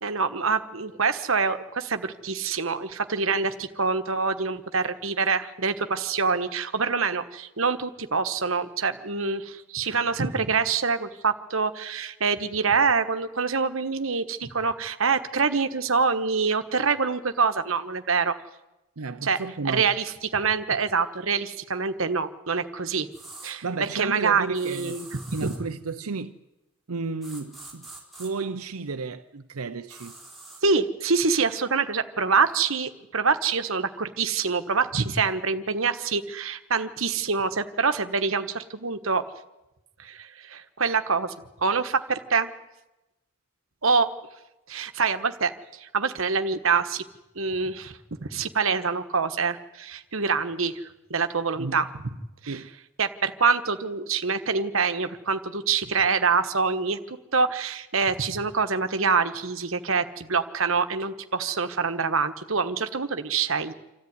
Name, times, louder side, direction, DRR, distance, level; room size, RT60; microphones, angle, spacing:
voice 1, 0.0-18.4 19.2-19.4 19.6-23.1 23.4-25.5 30.6-39.2 40.0-41.3 41.6-42.5 43.8-44.1 44.7-47.0 47.3-51.9 52.4-52.5 53.0-63.7, right 5 dB, 65° right, 1.3 m, -25 dB
voice 2, 19.0-19.9 23.6-25.0 25.3-26.4 26.9-27.9 28.2-30.2 51.6-51.8 52.5-52.7, right 4 dB, 90° right, 0.7 m, -33 dB
sound 1, 23.1-23.5 24.5-25.6 27.2-28.3 29.9-30.6, right 2 dB, ahead, 4.2 m, -44 dB
26.5 x 14.0 x 9.6 m
head